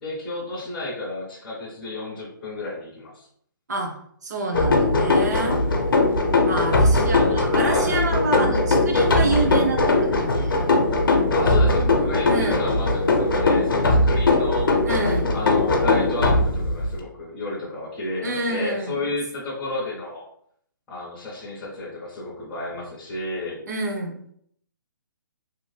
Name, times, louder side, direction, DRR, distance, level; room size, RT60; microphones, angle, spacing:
voice 1, 0.0-3.3 7.1-8.0 11.3-14.7 15.3-20.3 20.9-23.6, left 2 dB, 10° left, -8 dB, 0.4 m, -31 dB
voice 2, 4.2-5.6 6.4-10.6 12.3-12.6 14.8-15.3 18.2-19.0 23.7-24.2, right 2 dB, 50° right, 2 dB, 0.6 m, -27 dB
sound 1, 4.5-17.0, left 2 dB, 75° left, 0.6 m, -20 dB
2.6 x 2.1 x 3.2 m, 0.66 s
hypercardioid pair, 170°, 11 cm